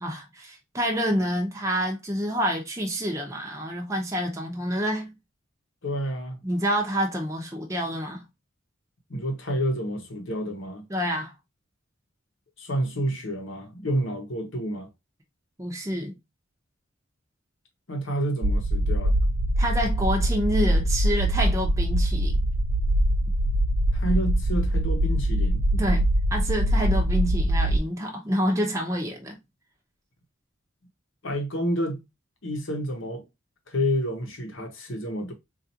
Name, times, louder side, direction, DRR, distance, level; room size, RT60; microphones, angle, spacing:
voice 1, 0.0-5.1 6.4-8.2 10.9-11.3 15.6-16.2 19.6-22.3 25.7-26.1 26.3-29.4, equal, 15° right, 0.7 m, -28 dB
voice 2, 5.8-6.4 9.1-10.8 12.6-14.9 17.9-19.2 23.9-25.6 31.2-32.0 32.4-33.3 33.7-35.3, equal, 60° left, 0.8 m, -29 dB
sound 1, 18.4-27.8, right 1 dB, 65° right, 0.5 m, -23 dB
4.1 x 2.5 x 2.7 m
head